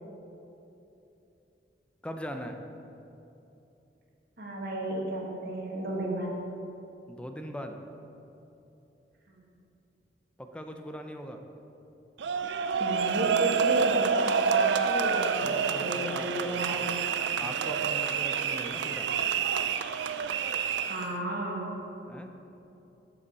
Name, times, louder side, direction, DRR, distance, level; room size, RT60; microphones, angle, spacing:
voice 1, 2.0-2.6 7.1-7.7 10.4-11.4 15.4-16.8 17.4-19.1 22.1-22.3, equal, 5° left, 5 dB, 0.5 m, -40 dB
voice 2, 4.4-6.4 9.3-9.4 12.8-17.0 20.9-21.8, right 1 dB, 60° right, -2 dB, 1.7 m, -33 dB
sound 1, 12.2-21.1, right 6 dB, 85° right, 0.4 m, -28 dB
8.4 x 6.9 x 5.4 m, 3.0 s
head